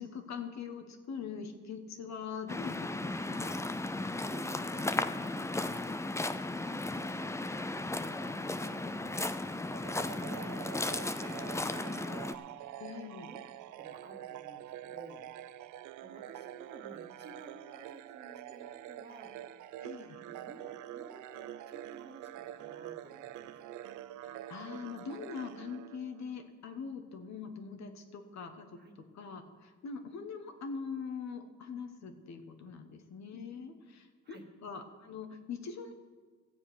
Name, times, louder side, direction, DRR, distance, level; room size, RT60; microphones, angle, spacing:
voice 1, 0.0-3.5 12.8-13.3 19.8-20.2 24.2-35.9, left 5 dB, 65° left, 6 dB, 1.3 m, -43 dB
Waves surf, 2.5-12.3, left 2 dB, 10° left, 0.5 m, -35 dB
voice 2, 4.2-5.1 5.4-7.4 7.7-12.3 13.0-13.4 13.8-15.3 16.0-19.4 20.2-23.5 28.8-29.0 34.2-34.4, right 3 dB, 35° right, 2 dB, 2.0 m, -54 dB
sound 1, 9.7-26.5, right 13 dB, 80° right, 0.5 m, -46 dB
14.0 x 7.5 x 6.2 m, 1.5 s
cardioid pair, 90°, 30 cm